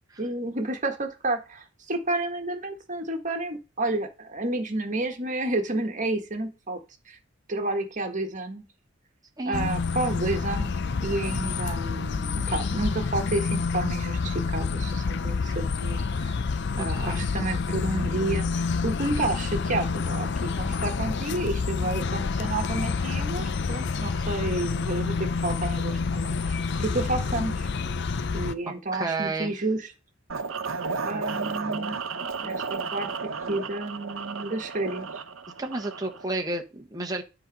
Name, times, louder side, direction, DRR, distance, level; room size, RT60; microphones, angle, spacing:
voice 1, 0.2-6.8 7.1-7.2 7.5-8.6 9.4-10.7 11.0-16.4 16.8-27.7 28.3-29.9 31.0-32.0 32.4-35.1, right 2 dB, 40° right, 4 dB, 1.6 m, -30 dB
voice 2, 9.4-9.7 16.8-17.3 28.9-29.6 35.6-37.2, right 2 dB, 20° right, 2 dB, 1.3 m, -31 dB
sound 1, 9.5-28.5, left 4 dB, 60° left, 0.5 m, -28 dB
sound 2, 30.3-36.2, right 4 dB, 85° right, 0.9 m, -33 dB
10.0 x 4.1 x 5.4 m, 0.28 s
head